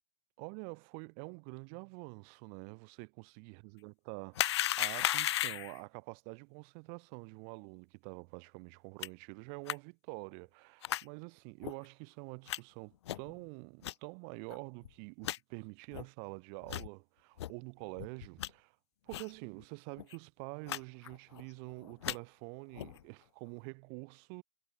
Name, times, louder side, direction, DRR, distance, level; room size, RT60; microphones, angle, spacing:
voice 1, 0.4-18.8 19.0-24.4, right 40 dB or more, 40° right, 2.4 m, -47 dB
sound 1, 4.3-5.8 9.0-9.1 9.7-9.8 10.8-11.0 11.6-11.7 12.5-12.6 13.1-13.3 13.8-13.9 14.5-14.6 14.8-14.9 15.2-15.4 15.9-16.0 16.6-16.9 17.4-17.5 18.0-18.5 19.1-19.3 19.6-19.7 20.0-20.2 20.7-20.8 21.0-21.4 21.8-22.2 22.7-23.0, left 13 dB, 60° left, 1.2 m, -35 dB
hypercardioid pair, 135°, 16 cm